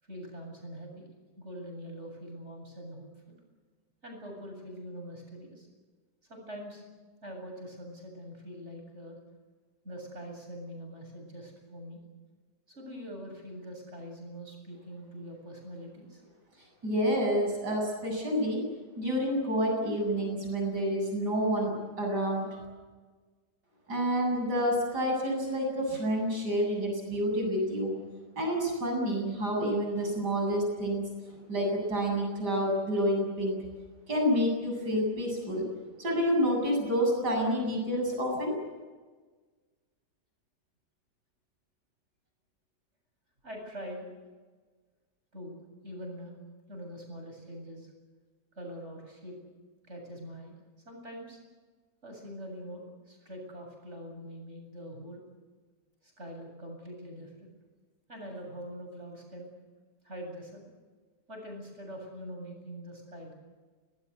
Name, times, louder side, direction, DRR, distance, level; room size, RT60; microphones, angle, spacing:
voice 1, 0.0-1.1 1.4-3.4 4.0-5.7 6.3-6.8 7.2-9.2 9.8-12.0 12.7-16.2 43.4-44.1 45.3-46.4 46.7-47.9 48.6-49.4 49.8-50.6 50.8-51.4 52.0-55.2 56.0-57.5 58.1-59.5 60.0-60.7 61.3-63.3, equal, 40° right, 2 dB, 8.3 m, -43 dB
voice 2, 16.8-18.6 19.0-22.7 23.9-27.9 28.4-31.0 31.5-33.6 34.1-35.6 36.0-38.6, equal, 70° right, 1 dB, 8.7 m, -28 dB
26.0 x 20.5 x 8.4 m, 1.4 s
omnidirectional pair, 1.8 m